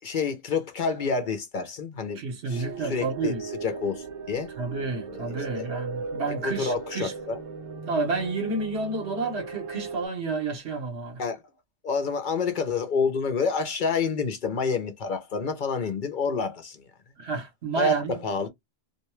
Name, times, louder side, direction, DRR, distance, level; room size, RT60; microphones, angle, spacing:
voice 1, 0.0-2.2 2.5-4.5 5.6-5.7 6.4-7.4 11.2-11.4 11.8-16.8 17.8-18.5, left 4 dB, 55° left, 0.7 m, -28 dB
voice 2, 2.1-3.4 4.6-7.1 7.9-11.2 17.2-18.2, right 3 dB, 80° right, 1.2 m, -30 dB
sound 1, 2.5-10.1, right 4 dB, 65° right, 0.9 m, -38 dB
2.6 x 2.2 x 3.0 m
omnidirectional pair, 1.1 m